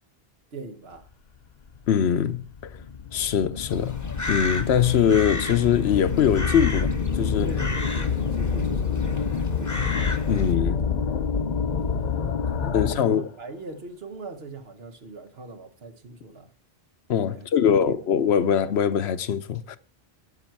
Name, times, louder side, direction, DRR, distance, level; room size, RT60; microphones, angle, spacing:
voice 1, 0.5-1.1 7.4-9.8 11.7-16.5 17.3-17.5 17.7-18.1, right 3 dB, 70° right, 1.4 m, -41 dB
sound 1, 1.8-1.9 2.5-13.2, left 6 dB, 50° left, 0.7 m, -27 dB
voice 2, 1.9-2.4 3.1-4.0 4.3-6.9 7.2-7.5 10.3-10.8 12.7-13.3 17.1-19.8, left 8 dB, 80° left, 1.0 m, -22 dB
Crow, 3.7-10.5, left 2 dB, 20° left, 0.8 m, -34 dB
9.6 x 7.9 x 4.5 m
omnidirectional pair, 1.1 m